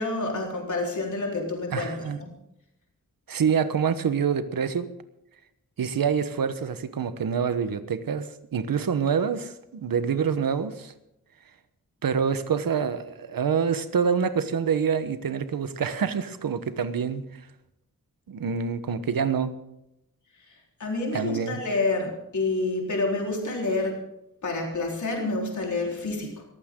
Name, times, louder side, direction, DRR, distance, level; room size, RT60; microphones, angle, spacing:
voice 1, 0.0-2.3 20.5-24.0 24.4-26.4, left 2 dB, 60° left, -1 dB, 4.2 m, -28 dB
voice 2, 1.7-2.2 3.3-4.9 5.8-10.9 12.0-17.2 18.3-19.5 21.1-21.6, right 6 dB, 90° right, 11 dB, 1.2 m, -26 dB
21.5 x 15.0 x 3.8 m, 0.84 s
wide cardioid pair, 125°, 33 cm